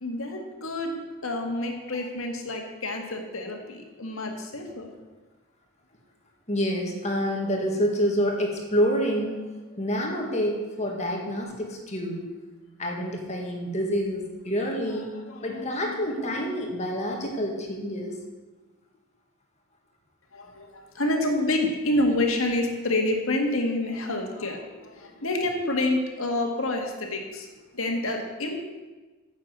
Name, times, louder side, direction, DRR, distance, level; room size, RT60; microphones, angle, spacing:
voice 1, 0.0-4.9 14.9-16.0 20.3-27.5 27.7-28.7, left 1 dB, 65° left, 2 dB, 1.9 m, -28 dB
voice 2, 6.5-9.4 9.8-12.3 12.8-15.1 15.4-18.2, equal, 30° left, 0 dB, 2.1 m, -27 dB
10.0 x 7.3 x 8.1 m, 1.2 s
head